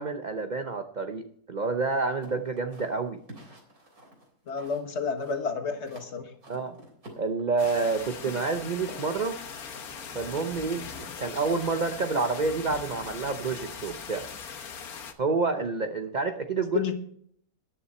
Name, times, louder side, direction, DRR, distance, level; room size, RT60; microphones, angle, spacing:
voice 1, 0.0-3.2 6.5-6.8 7.2-9.4 10.1-14.2 15.2-16.9, right 4 dB, 45° right, 7 dB, 0.6 m, -29 dB
sound 1, 2.2-4.9 5.2-6.1 6.4-7.8 8.2-12.0, right 1 dB, 60° right, 4.0 m, -48 dB
voice 2, 4.5-6.3 16.7-16.9, left 5 dB, 45° left, 6 dB, 1.7 m, -30 dB
sound 2, 7.6-15.1, left 6 dB, 70° left, 1.6 m, -40 dB
13.0 x 9.9 x 4.3 m, 0.63 s
omnidirectional pair, 1.7 m